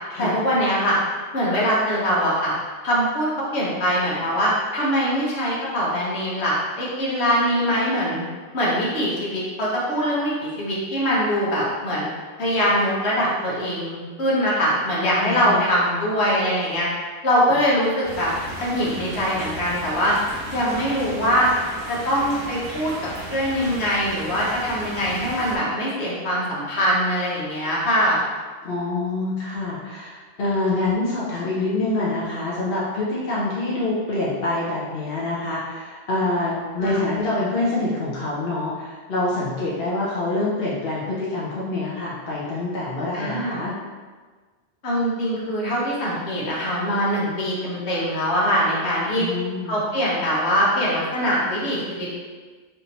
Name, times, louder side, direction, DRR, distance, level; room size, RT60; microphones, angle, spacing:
voice 1, 0.2-1.0 1.3-2.5 2.8-8.2 8.5-12.1 12.4-16.9 17.2-18.3 18.6-20.1 20.5-21.5 21.9-28.2 36.8-37.0 43.1-43.6 44.8-49.3 49.6-52.2, equal, 85° left, -6 dB, 1.3 m, -22 dB
voice 2, 15.2-15.7 28.6-43.7 49.2-49.8, left 2 dB, 70° left, -7 dB, 1.0 m, -26 dB
sound 1, 18.0-25.6, right 1 dB, 75° right, 1.1 m, -35 dB
3.4 x 2.7 x 4.1 m, 1.4 s
omnidirectional pair, 1.1 m